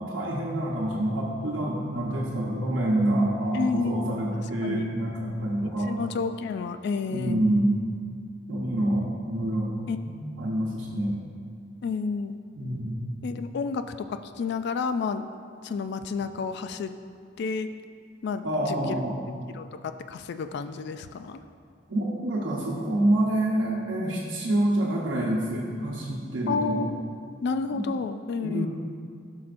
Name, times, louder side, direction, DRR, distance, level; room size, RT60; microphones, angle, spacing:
voice 1, 0.0-5.9 7.1-7.7 8.5-11.2 12.6-13.0 16.2-16.3 18.4-19.1 21.9-26.8 27.7-27.8 28.4-28.7, right 1 dB, 75° right, -4 dB, 0.9 m, -27 dB
voice 2, 3.5-4.1 4.6-4.9 5.8-7.5 9.9-10.0 11.8-12.4 13.2-15.3 15.6-16.9 17.4-17.7 18.2-19.0 19.5-21.4 26.5-27.0 27.4-28.7, left 5 dB, 60° left, 10 dB, 0.3 m, -30 dB
12.0 x 5.7 x 2.5 m, 2.2 s
head